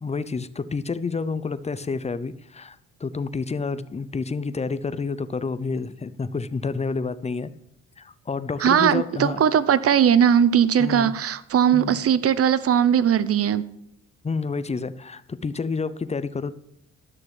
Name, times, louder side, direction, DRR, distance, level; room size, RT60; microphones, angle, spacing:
voice 1, 0.0-7.5 8.0-9.4 10.8-11.1 11.7-12.0 14.2-16.5, left 4 dB, 20° left, 15 dB, 0.6 m, -29 dB
voice 2, 8.6-13.6, right 8 dB, 50° right, 16 dB, 0.8 m, -19 dB
11.5 x 6.5 x 7.1 m, 0.78 s
cardioid pair, 90°, 30 cm